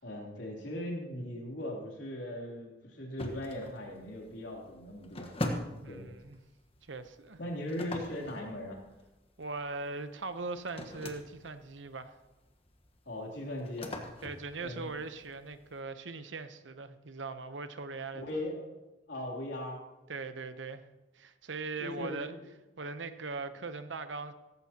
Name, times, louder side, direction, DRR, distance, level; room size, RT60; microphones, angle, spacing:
voice 1, 0.0-5.3 5.9-6.1 7.4-8.8 13.0-13.9 14.6-14.9 18.1-18.8 19.1-19.8 21.8-22.5, left 1 dB, 75° left, -1 dB, 3.2 m, -39 dB
sound 1, 3.2-15.8, left 1 dB, 30° left, 1.3 m, -43 dB
voice 2, 5.8-6.4 6.9-7.4 9.4-12.2 14.2-18.2 20.1-20.8 21.1-22.4 22.8-24.3, right 3 dB, 80° right, 10 dB, 0.9 m, -40 dB
16.5 x 15.0 x 2.9 m, 1.1 s
head